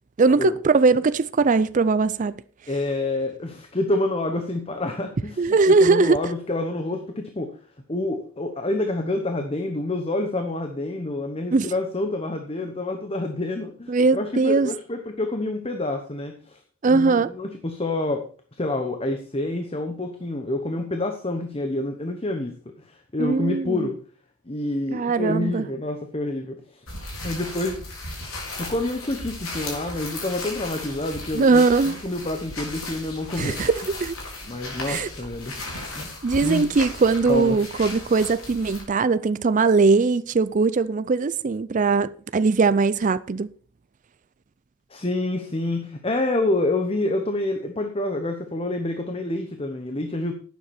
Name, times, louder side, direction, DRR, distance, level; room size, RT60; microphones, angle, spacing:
voice 1, 0.2-2.4 5.4-6.2 11.5-11.7 13.9-14.7 16.8-17.3 23.2-23.9 24.9-25.6 31.3-32.0 33.4-34.1 34.9-35.1 36.2-43.5, right 4 dB, 35° right, 0.4 m, -20 dB
voice 2, 2.7-7.5 7.9-16.6 16.9-18.2 18.6-22.6 22.9-24.0 24.5-26.8 27.2-27.8 28.6-33.6 34.5-35.5 35.9-36.1 36.4-36.7 37.3-37.6 44.9-50.3, left 2 dB, 25° left, 1.0 m, -27 dB
sound 1, 26.9-38.8, left 2 dB, 70° left, 4.7 m, -36 dB
11.5 x 9.5 x 4.3 m
head